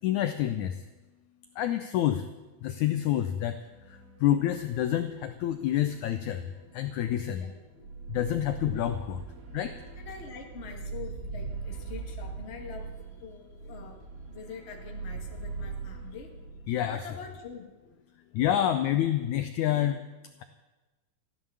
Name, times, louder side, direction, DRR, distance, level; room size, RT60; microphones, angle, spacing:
voice 1, 0.0-0.8 1.6-2.3 2.6-3.6 3.9-6.5 6.7-7.4 8.1-9.2 9.5-9.7 16.7-17.1 18.3-20.0, left 11 dB, 75° left, 9 dB, 1.8 m, -28 dB
sound 1, 2.9-3.2 3.5-17.5, right 4 dB, 40° right, 1.6 m, -42 dB
voice 2, 10.0-16.6 16.9-18.0, left 5 dB, 30° left, 2 dB, 1.3 m, -45 dB
14.5 x 11.5 x 7.1 m, 1.1 s
omnidirectional pair, 4.0 m